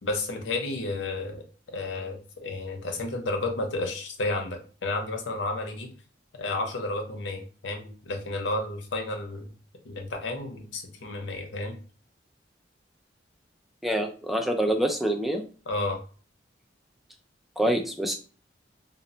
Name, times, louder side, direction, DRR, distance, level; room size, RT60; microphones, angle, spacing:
voice 1, 0.0-1.4 1.7-5.9 6.3-9.5 9.8-11.8 15.7-16.0, left 2 dB, 85° left, 4 dB, 0.6 m, -32 dB
voice 2, 13.8-15.4 17.6-18.1, right 1 dB, ahead, 2 dB, 0.3 m, -26 dB
2.0 x 2.0 x 3.7 m, 0.39 s
head